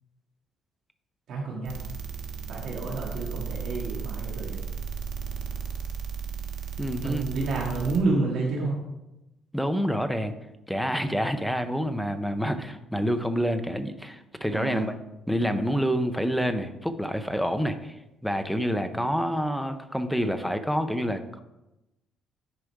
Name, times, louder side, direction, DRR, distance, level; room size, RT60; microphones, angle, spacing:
voice 1, 1.3-1.8 2.5-4.6 7.0-8.8 14.5-14.9, right 3 dB, 60° right, -2 dB, 1.7 m, -29 dB
sound 1, 1.6-8.0, right 6 dB, 80° right, 1.3 m, -35 dB
voice 2, 6.8-7.3 9.5-10.3 10.7-14.9 15.3-21.4, equal, ahead, 8 dB, 0.6 m, -28 dB
9.9 x 5.1 x 4.6 m, 0.95 s
cardioid pair, 140°, 0 cm